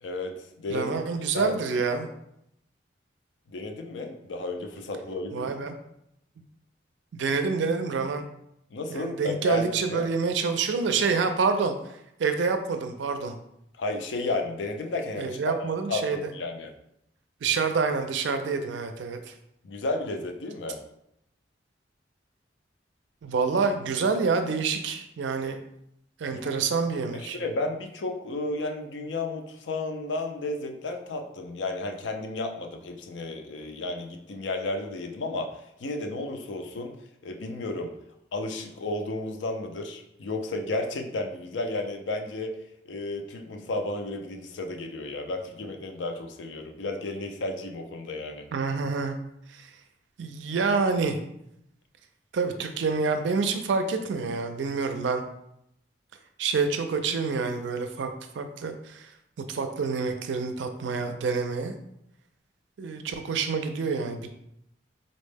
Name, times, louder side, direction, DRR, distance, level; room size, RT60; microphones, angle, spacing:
voice 1, 0.0-1.6 3.5-5.5 8.7-10.0 13.8-15.6 15.9-16.7 19.6-20.8 26.3-26.5 27.1-36.9 37.2-37.9 38.3-42.6 42.9-48.5, left 2 dB, 85° left, 4 dB, 0.5 m, -33 dB
voice 2, 0.7-2.1 5.3-5.7 7.1-8.2 8.9-11.8 12.2-13.4 15.2-16.2 17.4-19.3 23.2-25.6 26.2-27.4 48.5-49.2 49.5-49.7 50.2-51.2 52.3-55.2 56.4-59.1 59.5-61.7 62.8-64.3, right 4 dB, 80° right, 7 dB, 0.4 m, -27 dB
4.0 x 2.1 x 3.3 m, 0.78 s
head